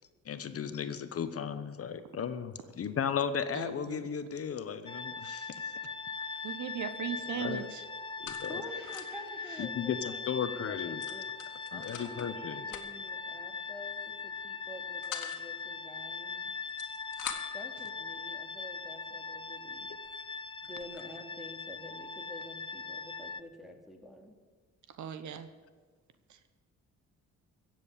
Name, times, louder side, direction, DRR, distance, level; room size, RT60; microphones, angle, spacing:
voice 1, 0.2-5.7 7.3-7.7 8.2-8.6 9.6-11.0 11.7-12.7, left 7 dB, 50° left, 10 dB, 1.0 m, -35 dB
voice 2, 3.5-4.1 6.4-7.8 8.7-9.7 17.8-17.9 25.0-25.5, right 9 dB, 75° right, 10 dB, 1.1 m, -39 dB
sound 1, 4.9-23.4, left 5 dB, 15° left, 0.6 m, -40 dB
sound 2, 5.6-5.9 6.1-7.0 7.2-9.3 9.7-9.8 10.0-10.2 11.0-12.3 12.7-13.1 13.9-14.2 14.6-15.4 16.5-17.7 18.4-18.5 19.1-19.2 19.7-19.8 20.0-21.1, left 9 dB, 90° left, 1.6 m, -45 dB
voice 3, 8.5-11.3 11.7-16.5 17.5-19.9 20.6-24.4, equal, ahead, 3 dB, 2.6 m, -49 dB
16.5 x 7.6 x 8.4 m, 1.4 s
cardioid pair, 90°, 30 cm